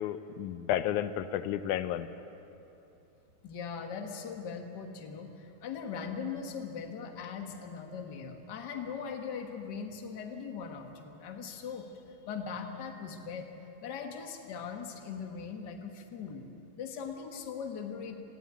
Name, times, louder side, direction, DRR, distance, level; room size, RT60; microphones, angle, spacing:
voice 1, 0.0-2.1, left 11 dB, 85° left, 12 dB, 2.1 m, -32 dB
voice 2, 3.4-13.5 13.8-16.5 16.8-18.2, left 6 dB, 45° left, 4 dB, 1.7 m, -40 dB
18.0 x 15.0 x 9.8 m, 2.8 s
omnidirectional pair, 3.4 m